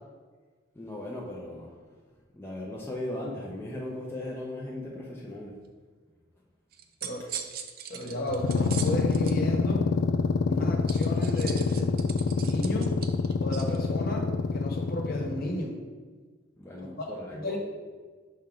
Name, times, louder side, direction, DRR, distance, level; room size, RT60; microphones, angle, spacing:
voice 1, 0.8-1.9 2.3-5.6 16.6-17.6, left 1 dB, 10° left, -3 dB, 0.6 m, -38 dB
sound 1, 6.7-9.4 10.9-13.8, right 8 dB, 50° right, 0.4 m, -40 dB
voice 2, 7.0-7.3 7.9-9.9 10.5-13.0 13.4-15.8 16.8-17.6, left 1 dB, 50° left, 0 dB, 1.2 m, -34 dB
sound 2, 8.3-15.7, left 4 dB, 70° left, 0.3 m, -27 dB
6.2 x 4.3 x 3.8 m, 1.5 s
head